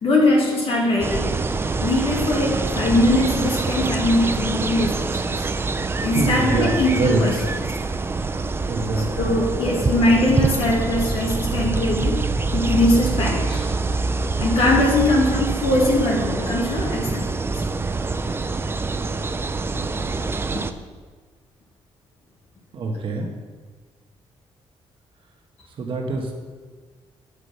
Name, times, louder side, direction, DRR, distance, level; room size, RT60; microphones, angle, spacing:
voice 1, 0.0-1.3 1.8-5.5 6.0-7.4 8.9-13.7 14.4-17.3, left 1 dB, 65° left, -3 dB, 1.8 m, -21 dB
sound 1, 1.0-20.7, right 3 dB, 20° right, 0.4 m, -25 dB
voice 2, 6.1-7.5 8.7-9.3 22.7-23.3 25.8-26.4, right 2 dB, 55° right, 1 dB, 1.2 m, -24 dB
7.4 x 6.6 x 5.5 m, 1.5 s
cardioid pair, 105°, 11 cm